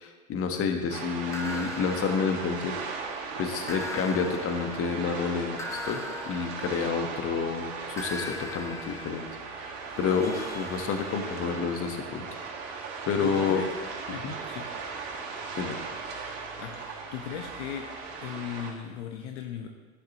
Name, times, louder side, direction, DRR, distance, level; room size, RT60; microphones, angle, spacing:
voice 1, 0.0-2.7 3.4-9.2 9.5-12.3 13.0-13.6 14.2-14.3 15.6-15.8, left 6 dB, 35° left, 5 dB, 1.3 m, -29 dB
sound 1, 0.9-18.7, right 4 dB, 40° right, 2.2 m, -38 dB
sound 2, 1.3-3.0 3.7-7.4 8.0-11.7, left 2 dB, 5° left, 0.7 m, -41 dB
voice 2, 13.2-13.7 14.1-14.8 16.6-17.9 18.2-19.7, left 8 dB, 55° left, 4 dB, 1.0 m, -37 dB
11.5 x 10.5 x 3.0 m, 1.4 s
hypercardioid pair, 95°, 41 cm